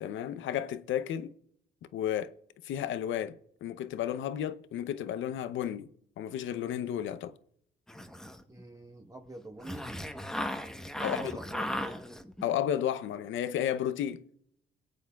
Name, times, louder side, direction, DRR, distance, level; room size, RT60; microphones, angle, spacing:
voice 1, 0.0-1.3 1.9-2.3 2.6-5.9 6.2-7.3 11.0-11.2 12.4-14.2, left 10 dB, 75° left, 0.7 m, -32 dB
sound 1, 7.9-8.6 9.6-12.4, left 1 dB, 5° left, 1.0 m, -37 dB
voice 2, 8.5-9.9 11.0-12.0, right 1 dB, 15° right, 1.2 m, -45 dB
22.5 x 8.3 x 2.3 m
cardioid pair, 90°, 20 cm